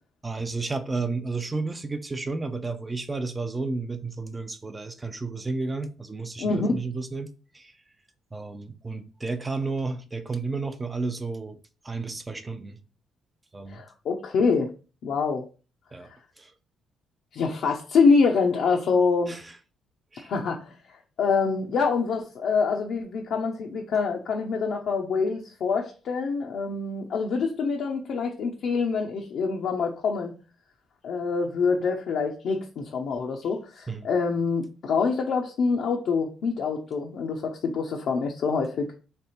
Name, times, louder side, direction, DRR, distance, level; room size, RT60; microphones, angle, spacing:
voice 1, 0.2-7.3 7.5-7.7 8.3-11.6 11.8-12.8 13.5-13.8 15.9-16.1 16.4-16.5 19.3-19.5 20.1-20.3 33.9-34.1, right 3 dB, 20° right, 0.5 m, -32 dB
voice 2, 6.4-6.7 13.7-14.7 15.0-15.5 17.3-19.3 20.3-20.8 21.2-30.3 31.0-38.9, left 5 dB, 65° left, 0.7 m, -25 dB
3.4 x 3.3 x 4.2 m
cardioid pair, 105°, 0 cm